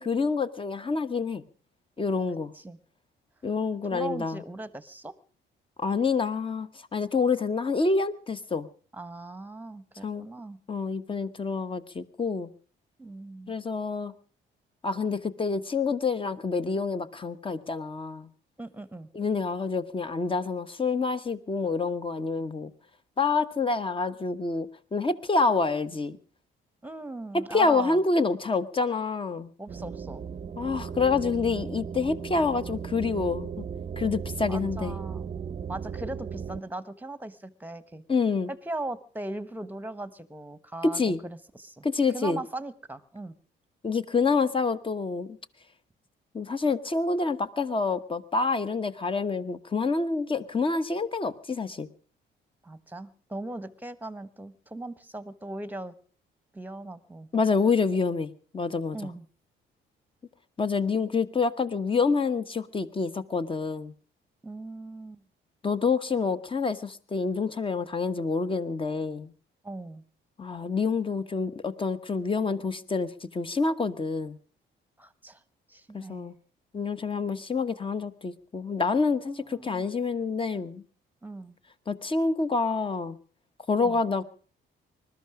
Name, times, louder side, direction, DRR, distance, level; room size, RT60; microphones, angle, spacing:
voice 1, 0.0-1.4 2.0-2.5 3.4-4.4 5.8-8.7 10.0-10.3 10.7-12.5 13.5-14.1 14.8-18.3 19.1-22.7 23.2-26.2 27.3-29.5 30.6-33.7 34.0-35.0 38.1-38.5 40.8-41.2 41.8-42.4 43.8-45.4 46.3-51.9 57.3-59.0 60.6-63.9 65.6-69.3 70.4-74.4 75.9-76.3 76.7-80.8 81.9-83.2 83.7-84.2, left 4 dB, 25° left, 12 dB, 1.2 m, -27 dB
voice 2, 3.9-5.1 8.9-10.6 13.0-13.5 18.6-19.1 26.8-28.0 29.6-30.2 34.5-35.3 35.7-38.0 38.5-41.9 42.1-43.3 52.6-55.9 56.5-57.3 58.9-59.2 64.4-65.2 69.6-70.0 75.0-75.4 75.7-76.3 79.3-79.8 81.2-81.6 83.8-84.0, right 2 dB, 10° right, 16 dB, 1.2 m, -39 dB
sound 1, 29.7-36.6, right 7 dB, 35° right, 0.7 m, -36 dB
20.5 x 13.0 x 4.9 m, 0.41 s
cardioid pair, 90°, 20 cm